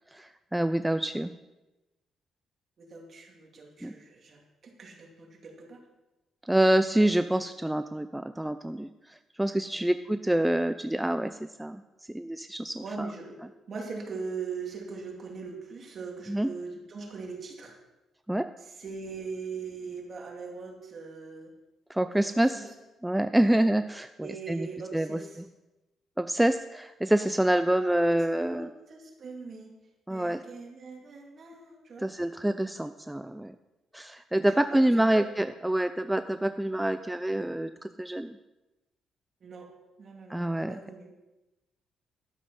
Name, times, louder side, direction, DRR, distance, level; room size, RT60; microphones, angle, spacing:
voice 1, 0.1-1.3 3.8-3.9 6.4-11.8 12.1-13.1 16.3-16.5 18.3-18.5 21.9-22.6 23.0-24.7 24.9-25.2 26.2-28.7 30.1-30.4 32.0-33.5 33.9-38.4 40.3-40.8, right 1 dB, 5° right, 10 dB, 0.4 m, -27 dB
voice 2, 2.8-5.8 9.7-10.0 12.8-13.4 13.7-17.7 18.6-21.5 22.1-22.2 22.5-22.7 23.3-23.7 24.2-25.4 27.7-29.7 30.1-32.1 34.7-35.3 39.4-39.7 40.0-41.1, right 4 dB, 50° right, 0 dB, 2.7 m, -41 dB
12.0 x 7.5 x 5.5 m, 1.0 s
cardioid pair, 90°, 0 cm